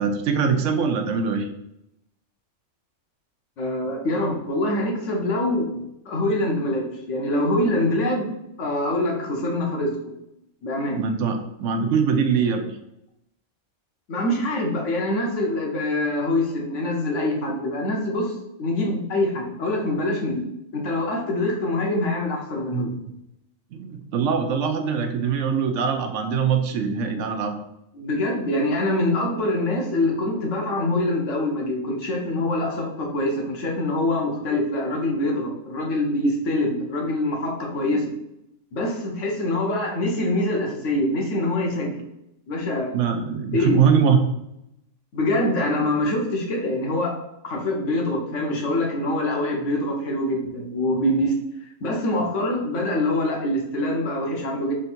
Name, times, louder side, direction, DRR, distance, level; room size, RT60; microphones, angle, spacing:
voice 1, 0.0-1.5 10.9-12.8 22.7-23.0 23.7-27.6 42.9-44.2, right 6 dB, 75° right, 6 dB, 0.9 m, -22 dB
voice 2, 3.6-5.7 6.1-8.3 8.6-10.1 10.6-11.0 14.1-20.5 20.7-22.9 27.9-38.1 38.7-42.0 42.5-42.9 43.5-43.7 45.1-47.2 47.4-51.4 51.8-54.7, left 1 dB, 70° left, 0 dB, 1.2 m, -24 dB
3.7 x 2.6 x 4.2 m, 0.82 s
omnidirectional pair, 1.3 m